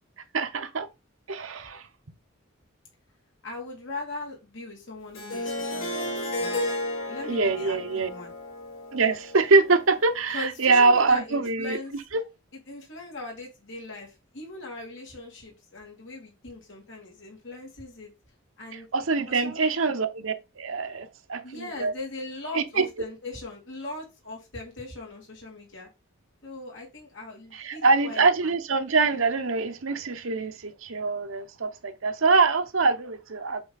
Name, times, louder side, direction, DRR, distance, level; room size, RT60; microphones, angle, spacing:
voice 1, 0.3-0.9 1.3-1.9 7.2-8.1 8.9-11.8 12.1-12.2 18.7-21.9 22.5-22.9 27.5-33.6, right 4 dB, 75° right, 0.9 m, -24 dB
voice 2, 3.4-6.7 7.0-8.3 10.3-12.0 12.7-18.1 18.6-18.9 19.3-19.7 21.4-25.9 26.4-28.5, left 2 dB, 65° left, 2.6 m, -40 dB
Harp, 5.1-10.1, left 1 dB, 90° left, 2.6 m, -33 dB
7.8 x 3.5 x 4.0 m
head